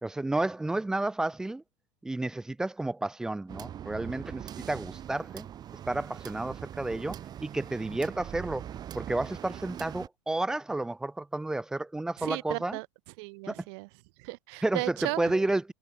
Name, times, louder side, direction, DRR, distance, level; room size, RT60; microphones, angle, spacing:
voice 1, 0.0-1.6 2.0-5.5 5.9-8.6 8.9-12.8 13.5-13.6 14.6-15.7, right 2 dB, 5° right, 0.4 m, -31 dB
sound 1, 3.5-10.1, right 10 dB, 25° right, 2.2 m, -42 dB
voice 2, 12.2-12.9 13.2-13.9 14.2-15.3, right 29 dB, 55° right, 1.1 m, -35 dB
supercardioid pair, 155°, 17 cm